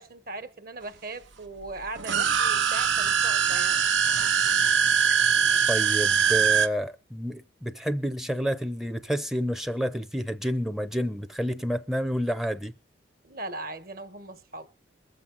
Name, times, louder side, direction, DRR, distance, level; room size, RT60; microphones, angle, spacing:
voice 1, 0.0-3.8 13.2-14.7, right 2 dB, 50° right, 1.3 m, -39 dB
sound 1, 2.0-6.7, right 7 dB, 80° right, 0.9 m, -22 dB
voice 2, 5.7-12.7, equal, ahead, 0.6 m, -29 dB
22.5 x 7.6 x 3.9 m
head